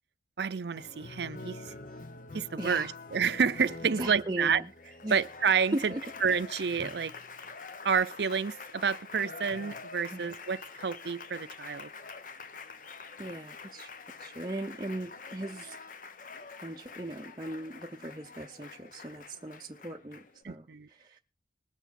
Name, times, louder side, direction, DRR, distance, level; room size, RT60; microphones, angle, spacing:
voice 1, 0.4-1.7 2.3-4.6 5.1-5.9 6.2-7.1 7.8-11.9 20.4-20.9, right 6 dB, 70° right, 0.5 m, -29 dB
Applause, 0.8-20.4, left 4 dB, 45° left, 0.8 m, -46 dB
voice 2, 2.6-2.9 4.0-4.7 5.0-5.2 5.7-6.0 10.1-10.3 13.2-13.9 14.2-15.8 16.6-21.2, right 1 dB, 20° right, 0.7 m, -38 dB
21.0 x 7.0 x 4.2 m
head